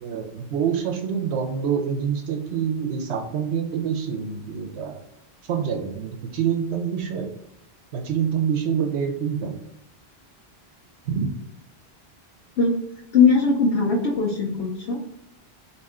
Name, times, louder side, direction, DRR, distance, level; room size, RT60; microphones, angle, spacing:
voice 1, 0.0-5.0 5.5-7.3 7.9-9.6 11.1-11.3, right 7 dB, 80° right, 4 dB, 0.9 m, -26 dB
voice 2, 13.1-15.1, left 4 dB, 85° left, -2 dB, 1.0 m, -20 dB
4.2 x 2.9 x 3.6 m, 0.80 s
omnidirectional pair, 1.1 m